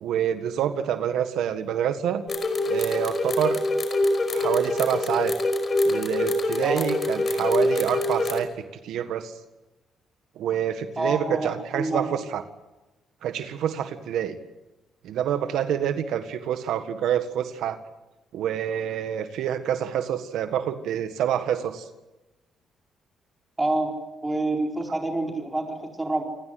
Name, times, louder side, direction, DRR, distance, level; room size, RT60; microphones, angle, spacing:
voice 1, 0.0-2.2 2.7-3.6 4.3-5.3 5.9-9.3 10.4-12.4 13.2-14.4 15.0-17.8 18.3-21.8, right 9 dB, 80° right, 9 dB, 1.7 m, -27 dB
sound 1, 2.3-8.4, left 1 dB, 35° left, 5.8 m, -25 dB
voice 2, 11.0-12.1 23.6-23.9 24.2-26.2, right 2 dB, 15° right, 1 dB, 4.5 m, -27 dB
28.0 x 20.0 x 7.9 m, 1.0 s
cardioid pair, 90°, 0 cm